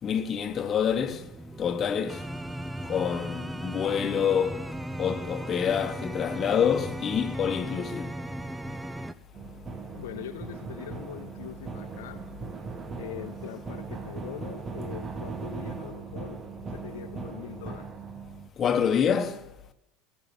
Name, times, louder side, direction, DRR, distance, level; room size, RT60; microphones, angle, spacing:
voice 1, 0.0-1.2 1.6-2.2 2.9-4.6 5.0-8.1 18.6-19.4, left 8 dB, 35° left, 1.4 m, -27 dB
sound 1, 1.0-9.1, right 1 dB, 5° right, 0.8 m, -37 dB
sound 2, 9.3-18.5, right 5 dB, 25° right, 1.4 m, -39 dB
voice 2, 9.9-12.2 13.0-16.4 16.7-17.9, left 11 dB, 65° left, 1.0 m, -42 dB
17.0 x 7.7 x 8.2 m
figure-of-eight pair, 75°, 0 cm